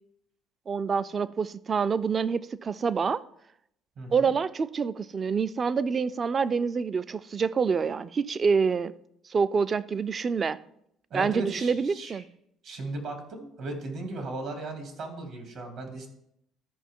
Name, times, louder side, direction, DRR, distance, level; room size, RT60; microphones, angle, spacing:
voice 1, 0.7-3.2 4.1-8.9 9.3-10.6 11.1-12.2, right 5 dB, 35° right, 0.4 m, -27 dB
voice 2, 4.0-4.3 11.1-12.2 12.6-16.1, right 2 dB, 65° right, 2.5 m, -36 dB
13.5 x 5.5 x 3.7 m
cardioid pair, 90°, 0 cm